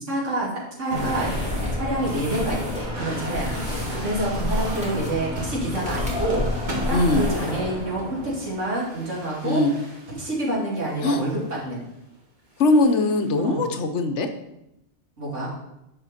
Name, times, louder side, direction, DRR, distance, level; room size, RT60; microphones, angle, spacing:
voice 1, 0.1-1.3 1.8-9.8 10.2-11.8 13.4-13.6 15.2-15.5, right 1 dB, 85° right, -5 dB, 3.1 m, -28 dB
sound 1, 0.9-7.7, left 1 dB, 5° right, 2.1 m, -29 dB
sound 2, 0.9-10.3 11.0-11.5 12.6-13.3, right 1 dB, 40° right, 1.8 m, -35 dB
voice 2, 6.9-7.3 9.4-9.8 11.0-11.2 12.6-14.3, left 2 dB, 75° left, 8 dB, 1.2 m, -20 dB
11.0 x 6.3 x 4.3 m, 0.87 s
omnidirectional pair, 1.2 m